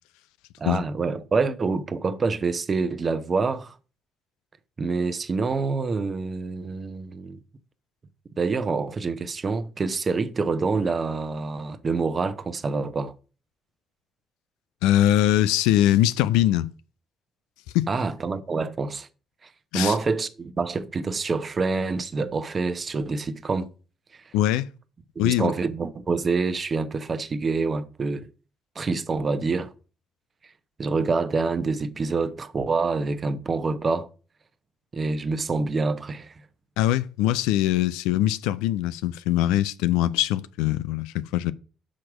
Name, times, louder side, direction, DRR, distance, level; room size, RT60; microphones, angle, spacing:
voice 1, 0.6-3.8 4.8-7.4 8.4-13.1 17.9-19.1 19.7-23.7 25.2-28.3 28.7-29.7 30.8-34.1 34.9-36.3, right 4 dB, 35° right, 1.0 m, -26 dB
voice 2, 14.8-16.7 17.7-17.9 19.7-19.9 24.3-24.7 25.2-25.5 36.8-41.5, left 13 dB, 65° left, 0.4 m, -22 dB
6.4 x 5.8 x 6.1 m
figure-of-eight pair, 40°, 0 cm